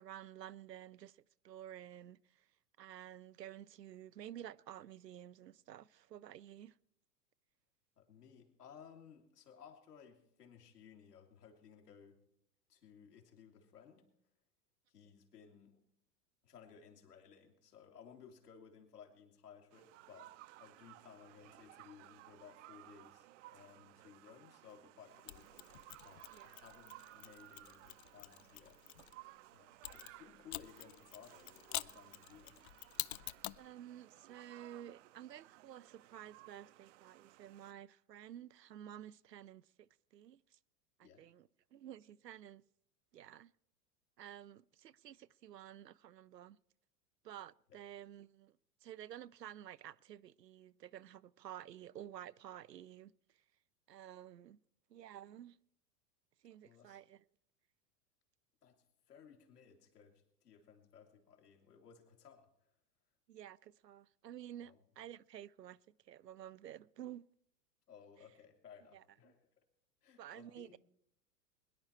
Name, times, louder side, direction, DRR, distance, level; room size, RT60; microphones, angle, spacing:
voice 1, 0.0-2.5 2.8-6.8 26.3-26.5 33.6-40.6 41.0-42.6 43.1-43.5 44.2-46.6 47.2-53.4 53.9-54.6 54.9-55.6 56.4-57.2 63.3-67.2 68.9-69.3 70.2-70.8, right 11 dB, 90° right, 0.6 m, -52 dB
voice 2, 8.0-12.2 12.7-14.1 14.9-15.8 16.4-20.3 20.6-25.5 26.0-28.8 29.5-32.6 41.0-41.3 47.7-47.8 56.6-57.0 58.6-62.5 64.6-64.8 67.9-69.5 70.0-70.8, left 7 dB, 75° left, 2.8 m, -59 dB
sound 1, 19.7-37.7, right 17 dB, 50° right, 0.6 m, -59 dB
Mechanisms, 25.3-29.1 29.8-33.7, left 15 dB, 45° left, 0.4 m, -47 dB
22.0 x 10.5 x 4.4 m
figure-of-eight pair, 95°, 48 cm